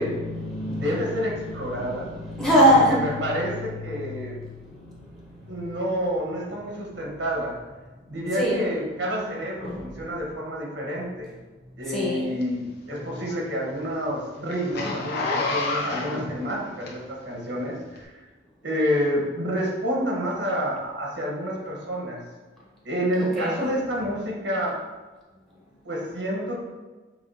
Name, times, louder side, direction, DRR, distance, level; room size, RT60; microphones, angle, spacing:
voice 1, 0.0-5.8 8.3-8.6 9.6-9.8 11.9-12.3 23.2-23.7, equal, ahead, -6 dB, 1.0 m, -25 dB
voice 2, 0.7-2.1 2.7-4.4 5.5-7.6 8.1-11.3 11.8-18.1 18.6-22.2 22.8-24.8 25.8-26.6, equal, 80° right, -3 dB, 1.2 m, -28 dB
Zipper (clothing), 12.4-17.3 17.9-18.0, left 2 dB, 60° left, 0.8 m, -29 dB
6.0 x 2.5 x 2.7 m, 1.2 s
head